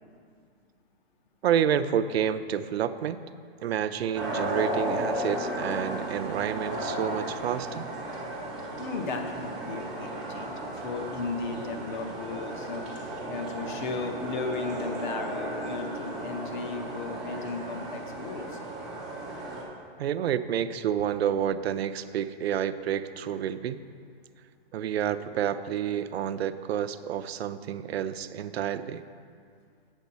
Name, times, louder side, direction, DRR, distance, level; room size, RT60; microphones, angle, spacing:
voice 1, 1.4-3.2 3.6-7.9 20.0-23.8 24.7-29.0, right 9 dB, 75° right, 12 dB, 0.5 m, -29 dB
sound 1, 4.1-19.6, right 1 dB, 5° right, 0.3 m, -35 dB
voice 2, 8.8-12.8 13.3-18.6, left 4 dB, 50° left, 4 dB, 1.0 m, -35 dB
8.5 x 7.1 x 4.1 m, 2.2 s
hypercardioid pair, 160°, 32 cm